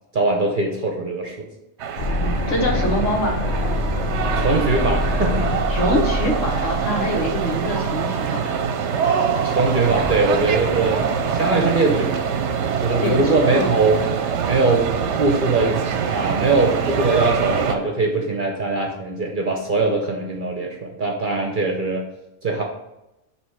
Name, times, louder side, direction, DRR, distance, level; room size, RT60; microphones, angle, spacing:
voice 1, 0.1-1.5 4.4-5.8 9.4-12.3 12.8-14.0 14.5-14.9 15.2-22.0 22.4-22.6, right 3 dB, 45° right, 2 dB, 0.9 m, -21 dB
sound 1, 1.8-17.7, right 7 dB, 70° right, 0.9 m, -24 dB
sound 2, 2.0-8.0, left 1 dB, 45° left, 1.1 m, -25 dB
voice 2, 2.1-3.4 5.7-8.7 13.0-13.8, equal, 70° left, 0 dB, 1.7 m, -24 dB
sound 3, 9.4-14.3, right 2 dB, 5° right, 1.4 m, -38 dB
7.9 x 3.2 x 5.7 m, 0.92 s
omnidirectional pair, 1.3 m